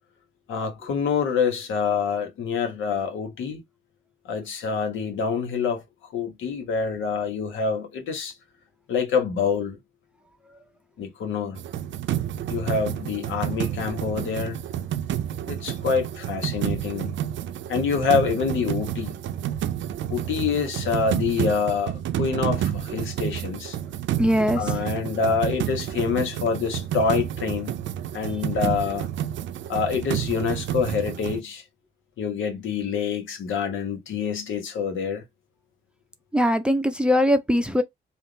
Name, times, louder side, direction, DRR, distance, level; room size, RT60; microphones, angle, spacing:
voice 1, 0.5-3.6 4.2-5.8 6.1-8.3 8.9-9.8 11.0-11.6 12.5-14.6 15.5-17.1 17.7-19.2 20.1-23.8 24.6-27.8 28.1-29.1 29.7-31.6 32.2-35.2, left 5 dB, 75° left, 1.3 m, -26 dB
sound 1, 11.5-31.4, right 11 dB, 70° right, 0.5 m, -30 dB
voice 2, 24.2-24.8 36.3-37.8, equal, 5° right, 0.6 m, -21 dB
3.5 x 2.5 x 4.0 m
cardioid pair, 90°, 20 cm